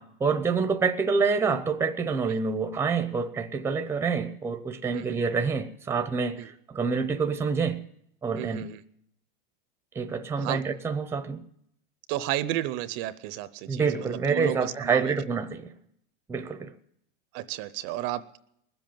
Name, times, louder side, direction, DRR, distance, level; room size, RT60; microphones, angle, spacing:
voice 1, 0.0-7.9 8.2-8.7 9.9-11.4 13.7-15.7 16.3-16.7, right 5 dB, 10° right, 0.7 m, -27 dB
voice 2, 8.4-8.8 10.4-10.6 12.1-15.1 17.3-18.4, right 14 dB, 45° right, 0.6 m, -33 dB
20.5 x 7.8 x 8.9 m
supercardioid pair, 145°, 30 cm